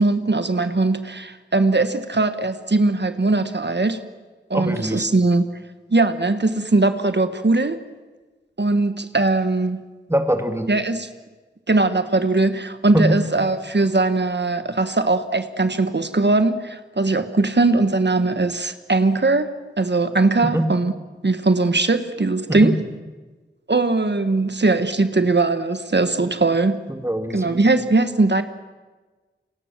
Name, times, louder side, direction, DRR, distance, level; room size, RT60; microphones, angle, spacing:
voice 1, 0.0-4.0 4.5-5.4 5.9-7.8 8.6-9.8 10.7-11.1 11.7-20.9 21.2-22.7 23.7-26.8 27.3-28.4, right 3 dB, 60° right, 10 dB, 1.4 m, -20 dB
voice 2, 4.5-5.1 10.1-10.7 12.9-13.2 20.5-20.6 22.5-22.7 26.9-27.6, right 1 dB, 15° right, 6 dB, 3.0 m, -22 dB
28.0 x 26.0 x 7.6 m, 1.3 s
wide cardioid pair, 50°, 20 cm